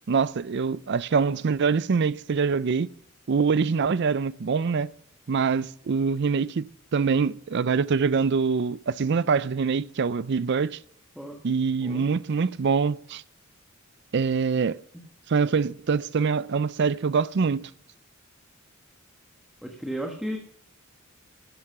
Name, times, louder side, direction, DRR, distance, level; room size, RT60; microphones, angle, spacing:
voice 1, 0.1-2.9 3.3-4.9 5.3-10.8 11.4-13.2 14.1-14.8 15.3-17.6, right 5 dB, 55° right, 0.5 m, -24 dB
voice 2, 19.6-20.4, right 1 dB, ahead, 1.4 m, -33 dB
12.5 x 10.5 x 5.7 m
head